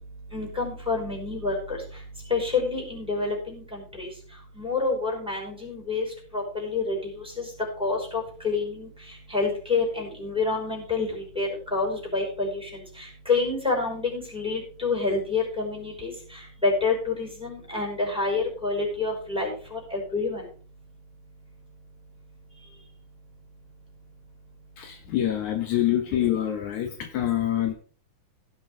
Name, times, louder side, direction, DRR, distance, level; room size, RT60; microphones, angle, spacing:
voice 1, 0.3-1.8 2.3-3.6 4.0-4.1 4.6-6.0 6.3-7.0 7.4-7.5 7.8-8.9 9.3-11.1 11.4-12.6 13.3-16.1 16.6-20.4, left 3 dB, ahead, -1 dB, 5.4 m, -27 dB
voice 2, 24.8-27.7, left 12 dB, 70° left, 5 dB, 2.5 m, -26 dB
16.5 x 7.6 x 3.7 m, 0.41 s
omnidirectional pair, 3.7 m